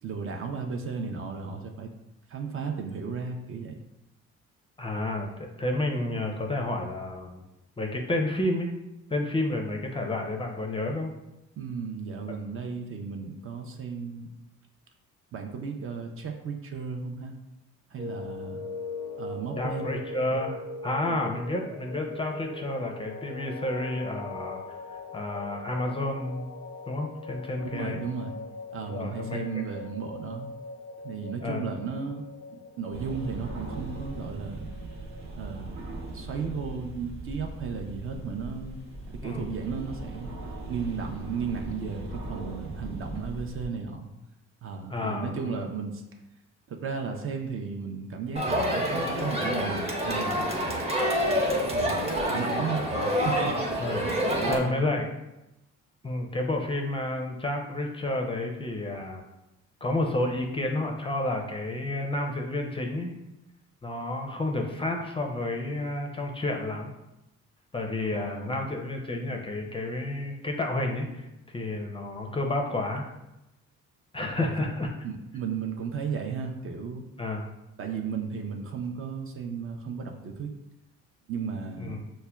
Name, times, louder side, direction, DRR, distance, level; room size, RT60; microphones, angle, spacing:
voice 1, 0.0-1.9 2.3-3.8 11.6-14.3 15.3-17.3 17.9-18.6 19.2-19.9 20.3-20.4 21.1-21.2 27.6-28.4 28.7-30.5 31.0-32.2 32.5-34.7 35.3-35.8 36.1-38.9 39.2-40.3 40.7-44.1 44.6-46.1 46.7-50.5 51.2-54.9 68.1-68.6 74.4-74.5 75.0-77.0 77.8-80.5 81.3-82.0, right 5 dB, 45° right, 3 dB, 0.5 m, -35 dB
voice 2, 4.8-7.4 7.8-8.7 9.1-11.1 19.6-26.5 26.9-28.0 28.9-29.6 31.4-31.6 39.2-39.5 44.9-45.7 53.8-54.0 54.5-55.1 56.0-59.2 59.8-63.1 63.8-66.9 67.7-73.1 74.1-74.9 77.2-77.4 81.8-82.0, left 2 dB, 20° left, 2 dB, 0.4 m, -30 dB
sound 1, 18.0-35.3, left 3 dB, 90° left, 0.5 m, -41 dB
sound 2, 32.9-43.7, right 2 dB, 60° right, 0.9 m, -39 dB
Crowd, 48.4-54.6, equal, 20° right, 0.8 m, -27 dB
5.6 x 2.1 x 2.2 m, 0.92 s
cardioid pair, 90°, 30 cm